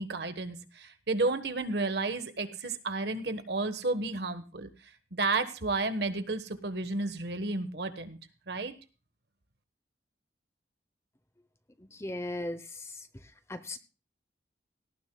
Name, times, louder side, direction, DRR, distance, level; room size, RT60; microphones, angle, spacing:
voice 1, 0.0-4.7 5.1-8.2 8.5-8.7, right 3 dB, 65° right, 9 dB, 1.3 m, -32 dB
voice 2, 11.8-13.0 13.5-13.8, left 1 dB, 15° left, 11 dB, 0.7 m, -37 dB
18.0 x 13.5 x 2.3 m, 0.33 s
head